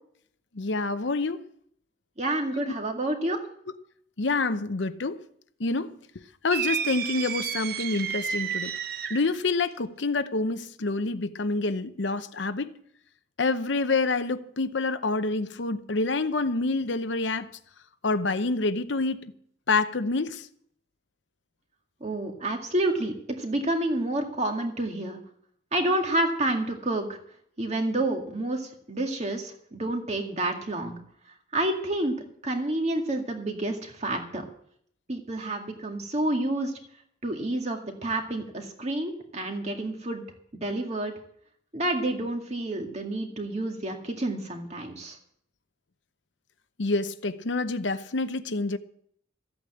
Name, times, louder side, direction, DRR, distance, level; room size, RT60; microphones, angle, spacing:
voice 1, 0.6-1.4 4.2-5.2 5.6-6.0 6.4-8.7 9.1-12.7 13.4-17.5 18.0-19.3 19.7-20.4 46.8-48.8, left 3 dB, 75° left, 0.8 m, -27 dB
voice 2, 2.2-3.4 22.0-25.2 25.7-27.1 27.6-31.0 31.5-32.2 32.4-34.4 35.1-36.7 37.2-40.2 40.6-41.1 41.7-45.2, right 1 dB, 35° right, 2.0 m, -29 dB
sound 1, 6.5-9.4, right 7 dB, 50° right, 0.7 m, -31 dB
14.0 x 8.6 x 7.9 m
head